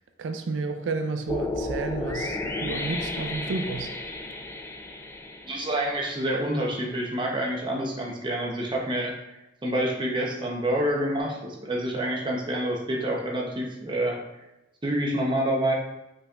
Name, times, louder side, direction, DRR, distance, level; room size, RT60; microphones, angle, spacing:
voice 1, 0.2-3.9, right 3 dB, 85° right, 6 dB, 0.4 m, -31 dB
sound 1, 1.3-6.5, left 2 dB, 15° left, 0.3 m, -33 dB
voice 2, 5.4-9.2 9.6-14.2 14.8-15.7, right 1 dB, 25° right, -1 dB, 0.7 m, -27 dB
5.4 x 4.0 x 2.4 m, 0.94 s
head